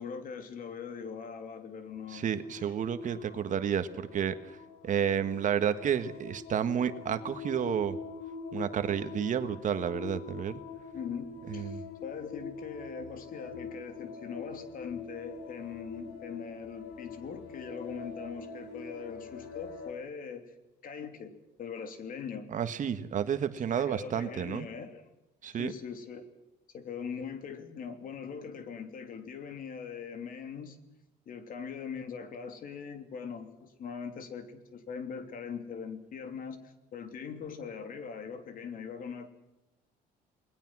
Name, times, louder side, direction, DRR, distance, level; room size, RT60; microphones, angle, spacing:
voice 1, 0.0-2.3 2.6-2.7 10.9-20.5 20.8-21.3 21.6-22.5 23.7-25.0 25.5-26.3 26.7-30.8 31.3-39.3, left 6 dB, 55° left, 7 dB, 3.2 m, -41 dB
sound 1, 1.9-19.9, left 5 dB, 85° left, 4.4 m, -44 dB
voice 2, 2.1-4.5 4.8-8.0 8.5-10.6 11.5-11.8 22.5-24.7 25.4-25.7, right 8 dB, 50° right, 10 dB, 1.6 m, -31 dB
28.5 x 20.5 x 6.2 m, 0.95 s
cardioid pair, 110°, 17 cm